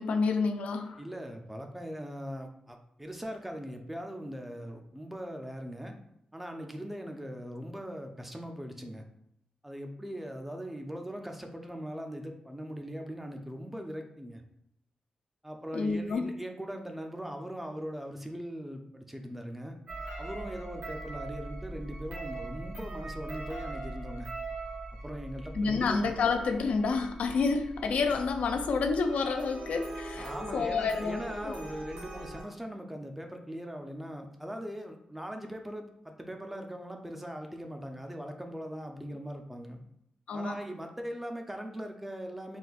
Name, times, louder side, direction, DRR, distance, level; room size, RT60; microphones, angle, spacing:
voice 1, 0.0-1.0 15.7-16.3 25.5-31.5 40.3-40.6, left 4 dB, 85° left, 6 dB, 0.3 m, -29 dB
voice 2, 1.0-6.0 6.3-9.0 9.6-14.4 15.4-19.8 20.2-24.3 25.0-26.0 30.1-39.8 40.3-42.6, equal, 10° right, 4 dB, 0.3 m, -40 dB
sound 1, 19.9-32.4, right 2 dB, 85° right, 1.3 m, -41 dB
3.8 x 2.5 x 2.3 m, 0.74 s
wide cardioid pair, 135°, 2 cm